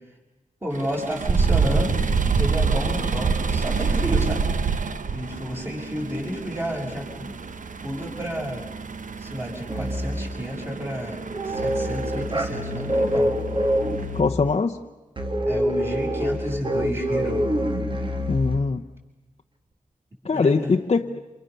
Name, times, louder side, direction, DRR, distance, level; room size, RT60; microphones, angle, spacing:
voice 1, 0.6-2.0 2.3-4.4 5.1-7.3 7.8-8.6 9.2-11.2 11.4-13.3 15.5-17.5 20.3-20.8, equal, 15° right, 6.4 m, -31 dB
sound 1, 0.7-14.2, right 5 dB, 70° right, 1.0 m, -27 dB
sound 2, 9.7-10.3 11.3-14.4 15.2-18.6, equal, 40° right, 2.2 m, -25 dB
voice 2, 14.1-14.8 18.3-18.9 20.2-21.2, left 4 dB, 50° left, 0.8 m, -22 dB
28.0 x 27.0 x 6.8 m
wide cardioid pair, 90°, 14 cm